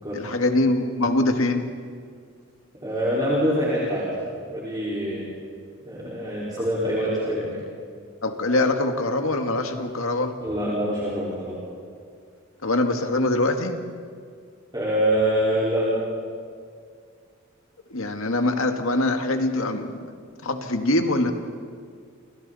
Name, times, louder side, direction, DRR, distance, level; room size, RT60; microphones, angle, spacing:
voice 1, 0.1-1.6 8.2-10.3 12.6-13.8 17.9-20.1 20.4-21.3, left 2 dB, 80° left, 5 dB, 1.9 m, -23 dB
voice 2, 2.8-4.1 4.5-5.3 5.8-7.6 10.4-11.6 14.7-15.9, equal, 20° right, -8 dB, 4.9 m, -25 dB
29.5 x 29.0 x 4.2 m, 2.1 s
head